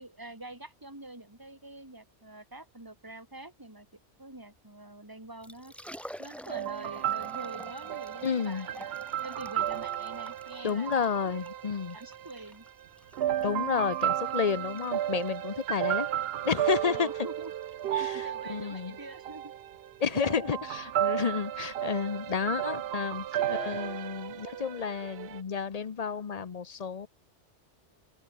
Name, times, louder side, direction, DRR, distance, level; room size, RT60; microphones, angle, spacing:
voice 1, 0.0-3.9 4.2-11.4 11.9-12.6 16.8-17.5 17.8-19.5 20.0-20.1, right 2 dB, 15° right, 3.3 m, -46 dB
Liquid, 5.2-22.6, equal, ahead, 7.5 m, -51 dB
sound 1, 6.5-12.5 13.1-25.4, right 11 dB, 65° right, 0.8 m, -33 dB
voice 2, 8.2-8.7 10.6-12.0 13.4-16.1 16.4-17.1 17.9-19.0 20.0-27.1, left 6 dB, 40° left, 0.8 m, -31 dB
open air
omnidirectional pair, 1.2 m